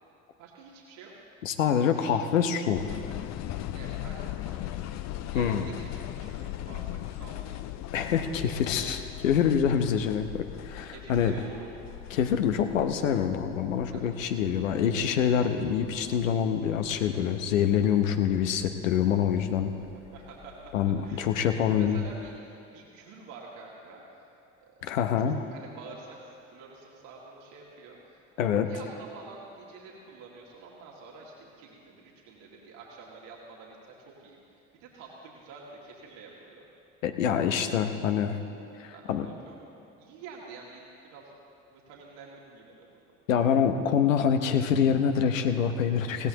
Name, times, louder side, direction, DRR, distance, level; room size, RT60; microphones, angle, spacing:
voice 1, 0.4-1.1 1.8-2.2 3.7-7.6 10.9-11.7 13.9-14.3 20.1-24.3 24.6-24.7 25.5-36.6 38.9-39.6 40.0-41.3 41.7-43.1, right 4 dB, 70° right, -4 dB, 2.3 m, -48 dB
voice 2, 1.4-2.8 5.3-5.7 7.9-11.3 12.1-19.7 20.7-22.0 24.8-25.4 28.4-28.7 37.0-38.4 38.8-39.3 43.3-46.3, left 8 dB, 80° left, 7 dB, 0.9 m, -26 dB
sound 1, 2.7-22.4, left 13 dB, 45° left, 0.6 m, -40 dB
20.5 x 16.5 x 3.0 m, 2.9 s
figure-of-eight pair, 60°, 39 cm